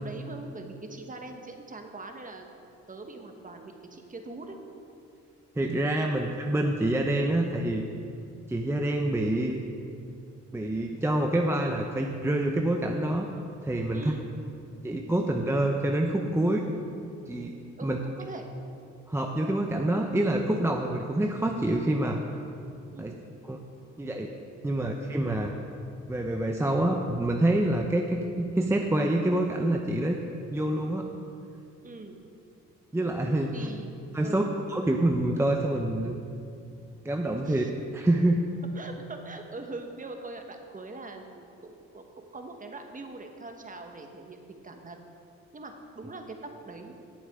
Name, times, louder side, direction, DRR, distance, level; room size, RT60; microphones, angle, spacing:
voice 1, 0.0-4.6 13.9-14.3 17.8-18.5 22.9-23.5 31.8-32.2 33.5-33.9 34.2-34.5 37.4-37.7 38.7-45.0 45.5-46.9, right 3 dB, 25° right, 4 dB, 1.3 m, -42 dB
voice 2, 5.6-7.8 8.5-9.6 10.5-13.3 13.6-14.1 14.8-16.6 17.3-17.5 17.8-18.0 19.1-22.2 23.0-23.1 23.4-23.6 24.0-24.3 24.6-25.5 26.1-30.2 30.5-31.1 32.9-33.7 34.1-34.4 34.7-36.2 37.0-37.6 37.9-38.5, right 1 dB, 10° right, 2 dB, 0.7 m, -26 dB
18.5 x 7.1 x 3.6 m, 2.5 s
cardioid pair, 90°, 30 cm